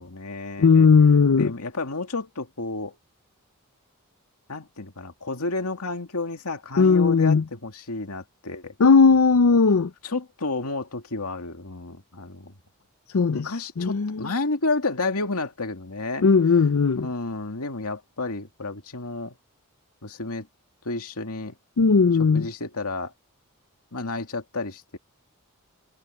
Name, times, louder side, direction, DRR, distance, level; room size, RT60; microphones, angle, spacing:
voice 1, 0.0-0.9 1.4-3.0 4.5-8.7 10.0-12.5 13.3-16.3 17.0-19.3 20.0-20.5 20.8-21.6 22.2-23.1 23.9-25.0, left 3 dB, 90° left, 2.4 m, -31 dB
voice 2, 0.6-1.5 6.8-7.4 8.8-9.9 13.1-14.2 16.2-17.1 21.8-22.5, left 5 dB, 70° left, 0.5 m, -17 dB
head